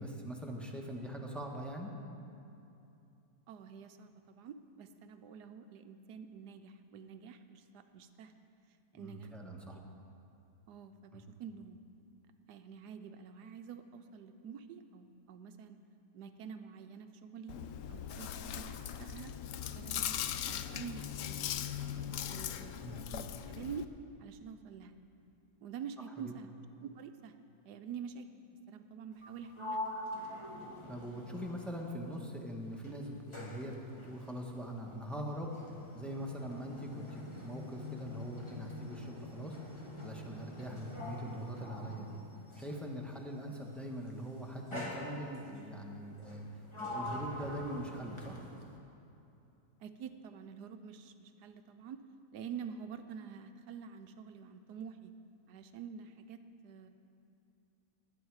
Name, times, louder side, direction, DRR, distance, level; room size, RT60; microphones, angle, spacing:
voice 1, 0.0-1.9 8.9-9.8 11.1-11.2 22.8-23.0 26.2-26.3 30.9-35.5 35.9-39.6 40.0-42.2 42.6-46.4 46.8-48.4, equal, ahead, -1 dB, 1.0 m, -42 dB
voice 2, 3.5-8.3 8.9-9.3 9.7-9.8 10.7-11.8 12.5-15.8 16.1-17.5 17.9-19.3 19.7-23.9 24.2-25.0 25.6-26.5 26.8-27.3 27.6-28.3 28.7-29.8 40.7-40.8 49.8-52.0 52.3-55.1 55.5-56.9, right 7 dB, 70° right, 9 dB, 1.1 m, -47 dB
Chewing mastication, 17.5-23.8, left 10 dB, 80° left, 0.7 m, -39 dB
Sliding door, 29.1-32.4 32.7-42.9 43.8-44.1 44.7-45.6 46.2-48.7, left 1 dB, 15° left, 1.5 m, -45 dB
20.5 x 8.8 x 4.8 m, 2.8 s
omnidirectional pair, 1.9 m